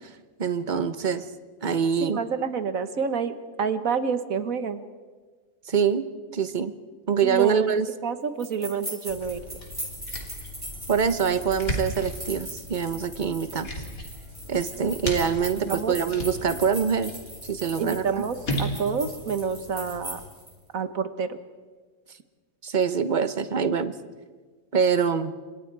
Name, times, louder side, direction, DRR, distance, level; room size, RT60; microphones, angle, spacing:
voice 1, 0.4-1.3 1.6-2.2 5.7-6.7 7.1-7.9 10.9-13.7 14.5-17.1 17.5-18.0 22.6-23.9 24.7-25.3, right 6 dB, 35° right, 11 dB, 1.1 m, -24 dB
voice 2, 2.0-3.3 3.6-4.8 7.2-9.4 15.5-15.9 17.8-20.2 20.7-21.4, right 6 dB, 75° right, 10 dB, 1.7 m, -28 dB
sound 1, 8.4-20.5, right 1 dB, 15° right, 7.1 m, -40 dB
sound 2, 9.1-20.3, equal, 80° left, 3.7 m, -36 dB
29.5 x 27.0 x 4.8 m, 1.5 s
omnidirectional pair, 1.5 m